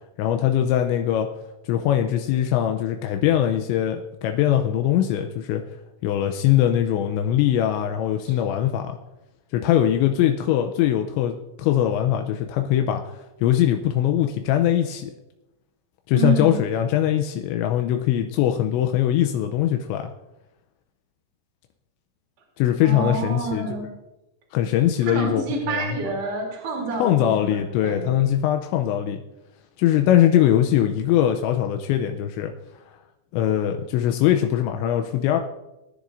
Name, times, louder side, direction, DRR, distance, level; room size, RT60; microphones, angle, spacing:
voice 1, 0.2-1.3 1.6-5.6 6.0-9.0 9.5-15.1 16.1-20.1 22.6-23.9 24.5-26.0 27.0-29.2 29.8-32.5 33.3-35.4, left 11 dB, 85° left, 5 dB, 2.8 m, -21 dB
voice 2, 16.1-16.6 22.8-23.9 25.0-28.2, right 4 dB, 45° right, -2 dB, 4.2 m, -28 dB
23.0 x 10.5 x 2.6 m, 0.95 s
omnidirectional pair, 5.6 m